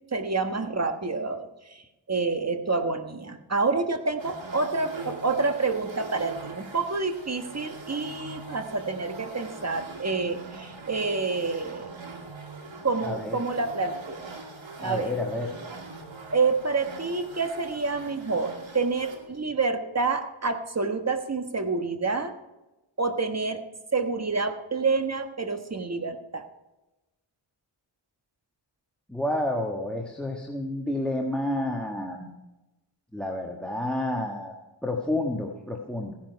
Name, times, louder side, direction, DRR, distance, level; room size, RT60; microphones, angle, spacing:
voice 1, 0.1-1.8 2.1-11.9 12.8-14.2 14.8-15.1 16.3-22.3 23.0-23.6 23.9-26.4, right 4 dB, 30° right, 6 dB, 1.3 m, -28 dB
sound 1, 4.2-19.3, right 3 dB, 65° right, 2.4 m, -42 dB
voice 2, 13.0-13.4 14.8-15.5 29.1-32.3 33.1-34.5 34.8-36.1, left 1 dB, ahead, 1 dB, 1.5 m, -30 dB
15.5 x 10.5 x 4.7 m, 1.0 s
wide cardioid pair, 75°, 50 cm